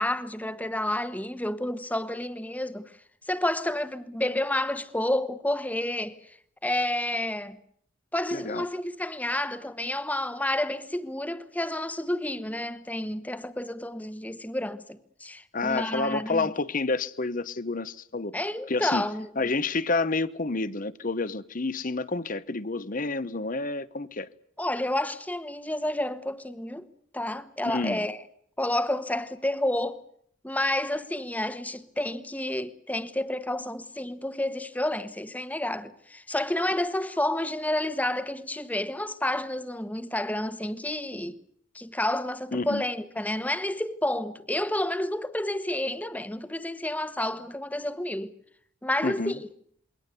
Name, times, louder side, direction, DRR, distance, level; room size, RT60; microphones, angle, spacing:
voice 1, 0.0-2.9 3.3-6.4 6.6-7.6 8.1-16.5 18.3-19.3 24.6-26.9 27.1-28.2 28.6-30.0 30.4-41.4 41.7-48.3 48.8-49.5, left 1 dB, 10° left, 1.2 m, -30 dB
voice 2, 8.3-8.7 15.5-18.4 18.7-19.1 19.4-24.3 27.7-28.1 42.5-42.8 49.0-49.4, left 3 dB, 40° left, 0.9 m, -29 dB
28.0 x 22.5 x 6.7 m
head